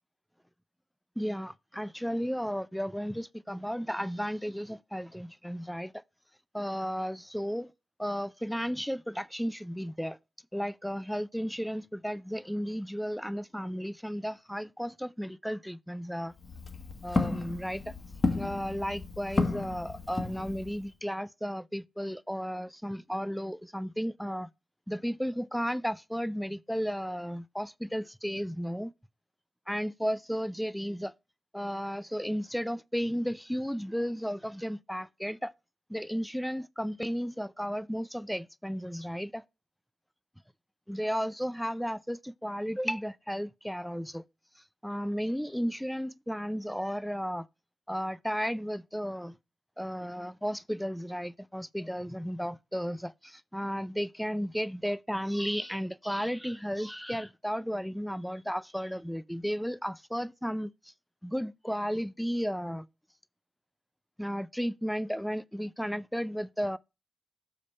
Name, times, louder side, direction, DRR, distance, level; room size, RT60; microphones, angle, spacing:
voice 1, 1.2-6.0 6.5-7.7 8.0-10.2 10.5-16.3 17.0-17.9 18.3-24.5 24.9-28.9 29.7-31.1 31.5-35.5 35.9-39.4 40.9-44.2 44.8-47.4 47.9-49.4 49.8-60.7 61.2-62.9 64.2-66.8, equal, ahead, 0.3 m, -34 dB
Walk footsteps, 16.3-20.9, left 3 dB, 30° left, 1.0 m, -32 dB
6.7 x 5.1 x 4.2 m
wide cardioid pair, 135°, 0 cm